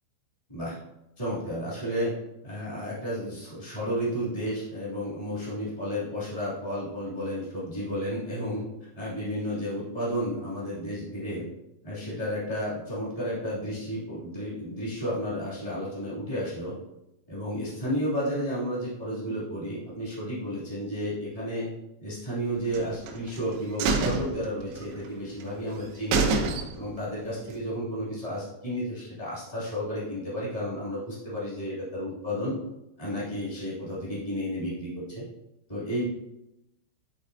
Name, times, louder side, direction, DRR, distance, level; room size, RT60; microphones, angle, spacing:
voice 1, 1.2-2.1 2.4-8.6 8.9-11.5 11.8-16.7 17.3-21.7 22.0-26.3 26.7-32.5 33.0-35.2 35.7-36.1, equal, 20° left, -8 dB, 1.0 m, -32 dB
sound 1, 22.7-23.4 23.8-25.1 25.4-25.5 25.8-25.9 26.1-27.0 27.4-27.5, right 4 dB, 85° right, 3.6 m, -27 dB
12.5 x 4.3 x 2.8 m, 0.89 s
omnidirectional pair, 5.9 m